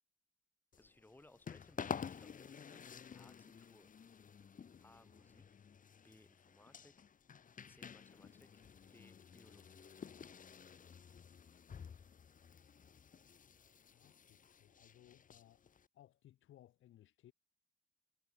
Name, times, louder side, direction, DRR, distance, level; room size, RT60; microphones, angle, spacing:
sound 1, 0.7-15.9, left 7 dB, 40° left, 1.5 m, -51 dB
voice 1, 0.8-3.9 4.8-5.5 6.0-6.9 7.7-8.5 8.9-9.9, left 2 dB, 10° left, 2.5 m, -65 dB
voice 2, 13.9-15.6 15.9-17.3, left 13 dB, 80° left, 3.7 m, -63 dB
cardioid pair, 90°, 20 cm